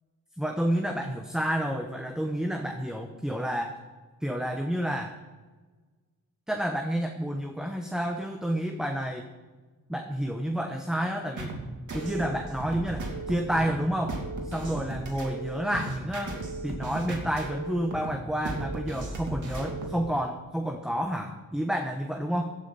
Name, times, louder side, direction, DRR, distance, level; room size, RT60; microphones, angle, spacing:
voice 1, 0.4-3.8 4.2-5.2 6.5-9.2 9.9-11.5 11.9-16.4 16.6-22.6, equal, ahead, 4 dB, 1.0 m, -30 dB
sound 1, 11.4-20.0, right 2 dB, 60° right, 2.8 m, -36 dB
16.0 x 12.0 x 4.1 m, 1.3 s
wide cardioid pair, 100°, 34 cm